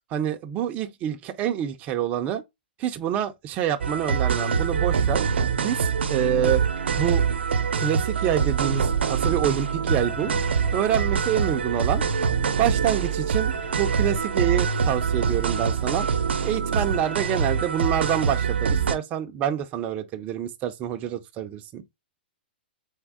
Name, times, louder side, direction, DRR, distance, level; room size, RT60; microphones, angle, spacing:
voice 1, 0.1-2.4 2.8-5.2 5.6-6.6 7.0-7.2 7.6-10.3 10.7-12.0 12.6-16.1 16.4-21.8, right 10 dB, 25° right, 0.5 m, -27 dB
sound 1, 3.8-19.0, right 6 dB, 85° right, 0.7 m, -24 dB
sound 2, 8.6-16.1, left 6 dB, 40° left, 0.8 m, -44 dB
3.9 x 3.6 x 3.5 m
hypercardioid pair, 145°, 6 cm